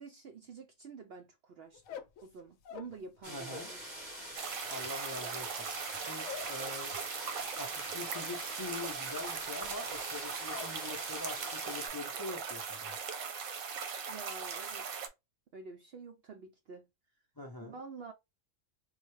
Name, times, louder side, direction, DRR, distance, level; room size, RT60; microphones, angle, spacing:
voice 1, 0.0-3.9 14.1-15.1 15.5-16.9 17.6-18.1, right 4 dB, 65° right, 0.6 m, -49 dB
sound 1, 1.7-3.8 4.1-10.8 11.1-11.6 11.9-12.4, left 7 dB, 75° left, 0.9 m, -49 dB
sound 2, 3.2-11.9, right 1 dB, 35° right, 1.9 m, -45 dB
voice 2, 3.3-3.7 4.7-5.7 6.1-6.9 7.6-13.0 17.4-17.8, left 3 dB, 30° left, 0.4 m, -44 dB
sound 3, 4.4-15.1, right 6 dB, 85° right, 1.2 m, -39 dB
4.1 x 2.2 x 3.1 m
omnidirectional pair, 1.4 m